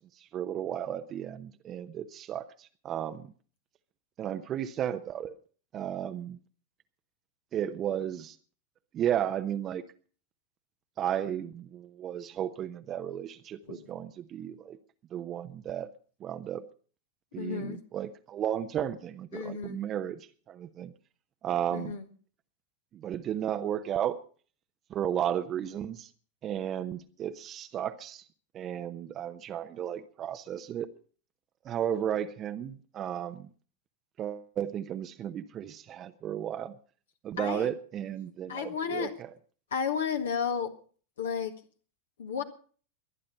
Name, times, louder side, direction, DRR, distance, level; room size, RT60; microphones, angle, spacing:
voice 1, 0.3-2.5 2.8-3.3 4.2-5.3 5.7-6.4 7.5-8.3 8.9-9.8 11.0-14.8 15.1-15.9 16.2-16.6 17.3-20.2 20.5-20.9 21.4-22.0 23.0-24.2 24.9-26.1 26.4-28.2 28.5-30.9 31.7-33.4 34.2-36.7 37.2-39.1, right 10 dB, 30° right, 0.8 m, -33 dB
voice 2, 13.6-14.0 14.5-14.6 17.4-17.8 19.3-19.8 21.7-22.1 37.4-37.7 38.5-39.1 39.7-40.7 41.2-41.5 42.2-42.4, left 6 dB, 65° left, 1.7 m, -33 dB
22.5 x 10.0 x 5.4 m
figure-of-eight pair, 90°, 0 cm